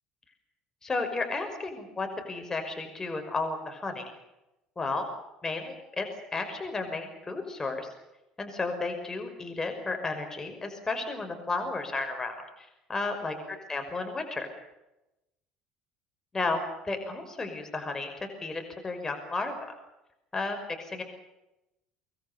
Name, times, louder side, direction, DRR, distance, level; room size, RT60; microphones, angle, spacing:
voice 1, 0.8-4.0 4.8-5.1 5.4-6.1 6.3-7.9 8.4-14.5 16.3-16.6 16.8-18.1 18.4-19.7 20.3-21.0, left 3 dB, 20° left, 5 dB, 5.7 m, -33 dB
26.0 x 21.0 x 7.1 m, 0.93 s
hypercardioid pair, 65°, 2 cm